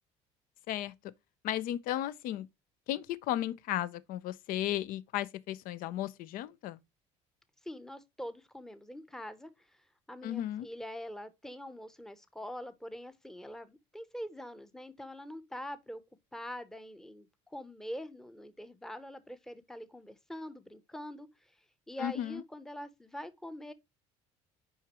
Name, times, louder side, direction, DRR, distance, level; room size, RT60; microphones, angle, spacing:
voice 1, 1.4-2.5 2.9-6.8 10.2-10.7 22.0-22.4, left 12 dB, 65° left, 0.6 m, -34 dB
voice 2, 7.6-16.0 16.3-21.5 21.9-23.7, left 1 dB, 5° left, 0.8 m, -44 dB
6.4 x 4.9 x 3.0 m
supercardioid pair, 85°, 15 cm